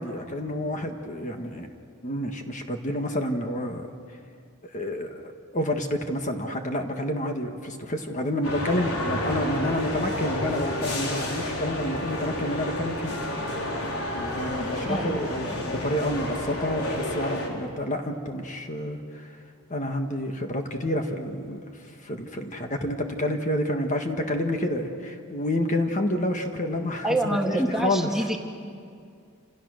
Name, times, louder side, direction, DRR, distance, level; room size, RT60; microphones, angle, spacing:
voice 1, 0.0-1.7 2.0-3.9 4.7-13.1 14.2-19.4 19.7-28.1, left 1 dB, 35° left, 4 dB, 1.6 m, -29 dB
sound 1, 8.4-17.5, left 1 dB, 75° left, 4.4 m, -30 dB
voice 2, 14.9-15.2 27.0-28.4, right 1 dB, ahead, 1 dB, 1.7 m, -26 dB
29.5 x 27.5 x 6.5 m, 2.3 s
head